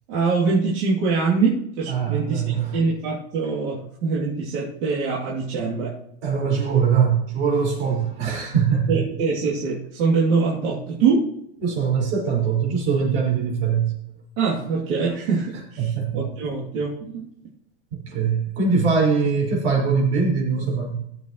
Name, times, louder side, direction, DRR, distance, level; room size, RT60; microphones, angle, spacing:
voice 1, 0.1-5.9 8.9-11.3 14.4-17.3, right 4 dB, 55° right, -6 dB, 3.0 m, -24 dB
voice 2, 1.9-2.8 6.2-9.0 11.6-13.9 15.8-16.2 17.9-21.0, right 6 dB, 70° right, -1 dB, 5.5 m, -22 dB
19.0 x 7.8 x 3.1 m, 0.75 s
supercardioid pair, 155°, 34 cm